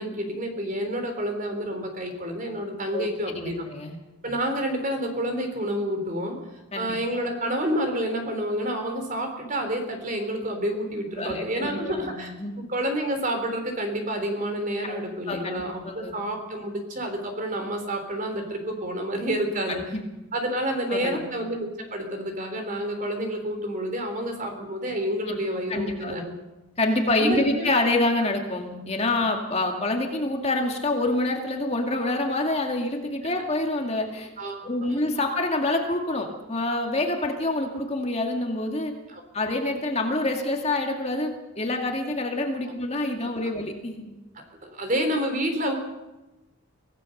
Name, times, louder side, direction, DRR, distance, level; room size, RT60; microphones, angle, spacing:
voice 1, 0.0-3.6 4.2-6.4 6.7-12.3 12.7-19.8 20.3-26.3 27.2-27.7 34.4-34.7 39.1-39.2 42.6-42.7 43.4-43.5 44.3-45.7, right 1 dB, 35° right, 5 dB, 3.8 m, -29 dB
voice 2, 2.9-4.0 6.7-7.0 11.2-12.5 14.8-15.0 15.3-16.1 19.7-20.0 20.9-21.2 25.7-26.1 26.8-34.3 34.6-38.9 39.3-44.2, left 2 dB, 30° left, 3 dB, 2.2 m, -27 dB
24.5 x 16.5 x 6.6 m, 1.0 s
head